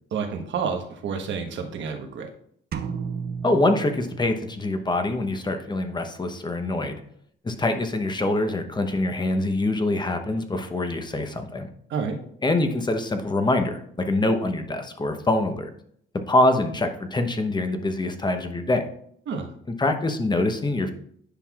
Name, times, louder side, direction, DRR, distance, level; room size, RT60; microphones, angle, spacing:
voice 1, 0.1-2.3 11.9-12.2 19.3-19.5, right 6 dB, 70° right, 4 dB, 1.2 m, -29 dB
sound 1, 2.7-4.7, right 6 dB, 50° right, 0.8 m, -33 dB
voice 2, 3.4-7.0 7.4-11.7 12.4-15.7 16.1-18.8 19.8-20.9, left 2 dB, 20° left, 6 dB, 0.9 m, -24 dB
10.0 x 5.5 x 2.4 m, 0.66 s
cardioid pair, 90°, 20 cm